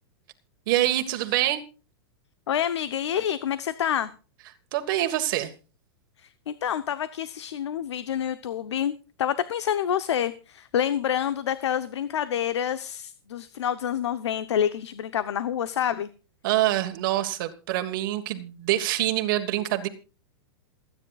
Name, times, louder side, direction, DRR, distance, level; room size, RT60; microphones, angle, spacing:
voice 1, 0.7-1.6 4.7-5.5 16.4-19.9, right 14 dB, 50° right, 1.5 m, -25 dB
voice 2, 2.5-4.1 6.2-16.1, left 9 dB, 90° left, 0.9 m, -28 dB
28.0 x 9.7 x 2.4 m
hypercardioid pair, 150°, 14 cm